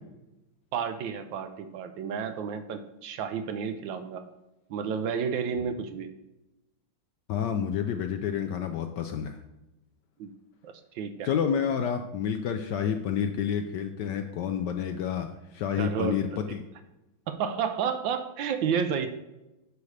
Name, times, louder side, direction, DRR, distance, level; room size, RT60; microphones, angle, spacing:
voice 1, 0.7-4.3 4.7-6.1 10.2-10.3 10.6-11.3 15.8-16.2 16.5-16.6 17.3-19.1, right 7 dB, 70° right, 8 dB, 1.3 m, -31 dB
voice 2, 7.3-9.4 11.2-16.6, left 8 dB, 75° left, 6 dB, 1.0 m, -29 dB
9.5 x 6.5 x 3.2 m, 0.96 s
omnidirectional pair, 2.3 m